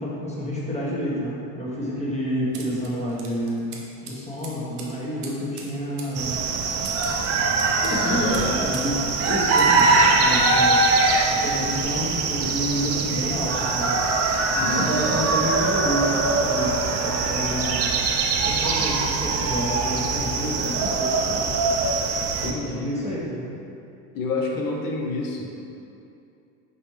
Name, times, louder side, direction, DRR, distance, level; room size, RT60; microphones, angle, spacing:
voice 1, 0.0-6.4 7.8-10.8 11.3-14.0 14.5-17.9 18.4-21.6 22.4-23.5, equal, 15° left, -6 dB, 1.1 m, -29 dB
sound 1, 2.5-8.9 9.2-10.0, right 5 dB, 85° right, 0.7 m, -42 dB
sound 2, 6.1-22.5, right 3 dB, 35° right, 0.4 m, -22 dB
voice 2, 7.9-8.6 14.6-15.2 22.4-23.3 24.1-25.5, left 3 dB, 50° left, -1 dB, 0.8 m, -29 dB
4.3 x 3.2 x 3.1 m, 2.7 s
hypercardioid pair, 75°, 45 cm